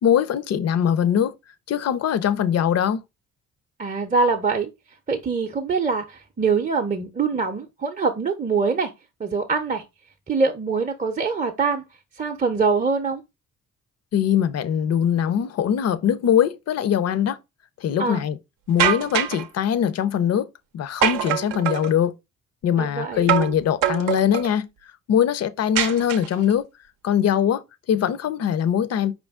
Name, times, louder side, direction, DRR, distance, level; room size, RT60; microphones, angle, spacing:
voice 1, 0.0-1.3 1.7-3.0 14.1-17.4 17.8-18.4 18.7-20.5 20.7-22.1 22.6-24.7 25.1-26.7 27.0-29.1, left 9 dB, 45° left, 0.5 m, -22 dB
voice 2, 3.8-4.7 5.1-8.9 9.2-9.8 10.3-11.8 12.2-13.2 18.0-18.2 22.8-23.3, right 4 dB, 20° right, 0.6 m, -23 dB
sound 1, 18.8-19.5 21.0-21.9 23.3-23.6 23.8-24.5 25.8-26.5, right 11 dB, 60° right, 0.6 m, -23 dB
4.8 x 2.5 x 3.5 m
hypercardioid pair, 50°, 37 cm